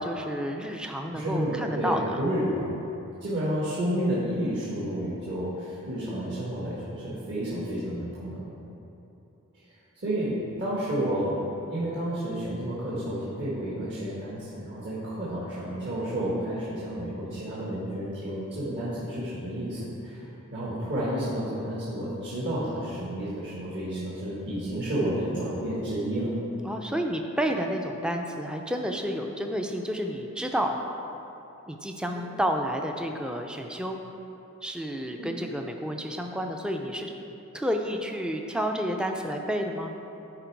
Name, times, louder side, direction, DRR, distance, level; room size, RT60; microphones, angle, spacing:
voice 1, 0.0-2.2 26.6-30.8 31.7-34.0 34.6-37.1 37.5-39.9, equal, 5° right, 3 dB, 0.4 m, -30 dB
voice 2, 1.1-2.8 3.2-8.5 10.0-26.3 32.1-32.3 35.2-35.3, right 1 dB, 55° right, -9 dB, 1.5 m, -31 dB
10.5 x 4.3 x 4.6 m, 2.9 s
head